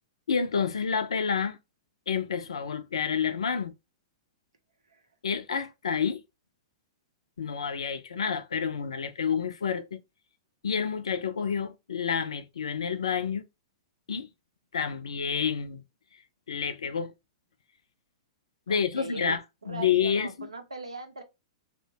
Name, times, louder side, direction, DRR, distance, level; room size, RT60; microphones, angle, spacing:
voice 1, 0.3-1.6 2.1-3.7 5.2-6.2 7.4-10.0 10.6-13.4 14.1-14.3 14.7-15.8 16.5-17.1 18.7-19.4 19.7-20.5, left 6 dB, 75° left, 0.4 m, -29 dB
voice 2, 18.7-21.2, right 3 dB, 85° right, 0.6 m, -40 dB
2.7 x 2.1 x 2.7 m
figure-of-eight pair, 110°, 3 cm